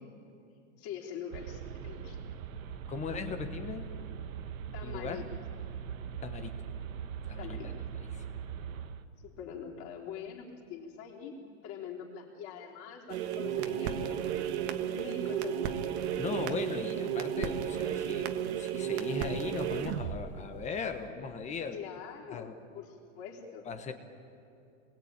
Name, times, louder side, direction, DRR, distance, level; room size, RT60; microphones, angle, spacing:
voice 1, 0.8-2.2 4.7-5.2 7.4-7.7 9.2-11.4 11.6-15.7 21.7-23.7, left 7 dB, 35° left, -2 dB, 3.8 m, -44 dB
sound 1, 1.3-9.0, right 8 dB, 80° right, 1.6 m, -41 dB
voice 2, 2.9-3.9 4.8-5.3 6.2-6.6 7.3-8.2 13.6-13.9 16.2-21.8 22.3-22.6 23.6-23.9, left 5 dB, 15° left, 7 dB, 1.2 m, -38 dB
sound 2, 13.1-21.1, right 9 dB, 55° right, 1.6 m, -33 dB
28.0 x 21.0 x 8.9 m, 2.5 s
supercardioid pair, 155°, 40 cm